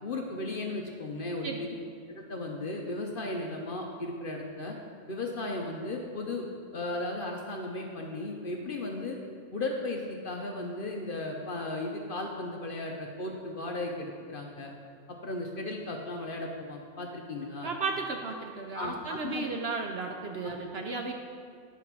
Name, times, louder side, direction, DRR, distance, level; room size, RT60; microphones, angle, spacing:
voice 1, 0.0-1.8 2.1-4.7 5.1-6.5 6.7-9.2 9.5-14.7 15.1-17.7 18.7-19.6 20.4-20.5, left 2 dB, 50° left, 1 dB, 0.8 m, -35 dB
voice 2, 17.6-21.1, right 4 dB, 60° right, 3 dB, 0.7 m, -34 dB
9.9 x 4.1 x 5.9 m, 2.1 s
omnidirectional pair, 1.4 m